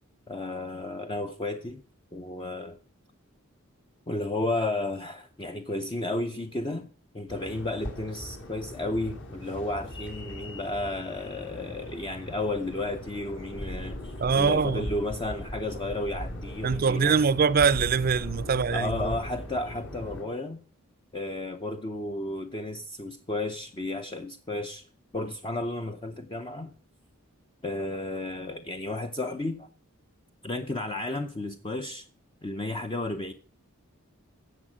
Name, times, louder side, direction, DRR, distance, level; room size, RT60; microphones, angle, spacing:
voice 1, 0.3-1.8 2.1-2.8 4.1-6.9 7.1-17.2 18.7-20.6 21.1-24.8 25.1-26.7 27.6-29.7 30.4-32.1 32.4-33.3, left 2 dB, 20° left, 0.6 m, -33 dB
sound 1, 7.3-20.2, equal, 55° left, 3.7 m, -39 dB
voice 2, 14.2-14.9 16.6-19.1, right 5 dB, 45° right, 0.5 m, -23 dB
14.0 x 7.8 x 6.2 m
head